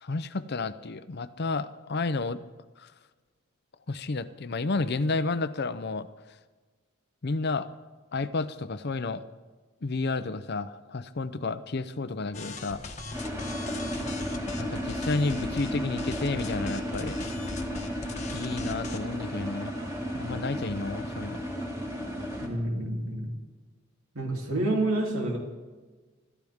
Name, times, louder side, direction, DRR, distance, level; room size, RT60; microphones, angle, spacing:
voice 1, 0.0-2.4 2.8-2.9 3.9-6.1 7.2-7.7 8.1-9.2 9.8-12.9 14.6-17.1 18.3-19.7 20.1-21.4, left 3 dB, 50° left, 12 dB, 0.7 m, -31 dB
sound 1, 12.3-15.7 16.0-19.1, left 2 dB, 35° left, 1.2 m, -40 dB
sound 2, 13.1-22.5, equal, 15° right, 2.3 m, -34 dB
voice 2, 22.4-23.3 24.1-25.4, right 1 dB, 75° right, 0 dB, 3.1 m, -28 dB
25.0 x 13.5 x 3.6 m, 1.3 s
head